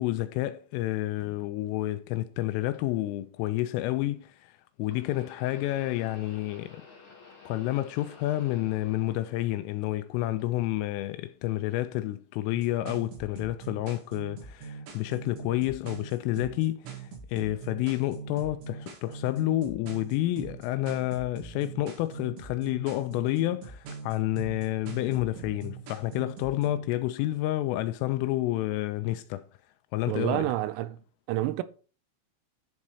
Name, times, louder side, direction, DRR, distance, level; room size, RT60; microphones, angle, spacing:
voice 1, 0.0-4.5 4.8-6.9 7.5-29.5 29.9-30.5, left 15 dB, 85° left, 3.1 m, -29 dB
sound 1, 2.7-2.8 4.8-9.9 10.2-11.0 11.8-11.9 12.9-13.0, left 5 dB, 50° left, 4.5 m, -52 dB
sound 2, 12.5-26.8, right 6 dB, 65° right, 4.3 m, -42 dB
voice 2, 30.1-31.0 31.3-31.6, right 15 dB, 85° right, 3.2 m, -28 dB
11.5 x 4.2 x 4.8 m
omnidirectional pair, 5.9 m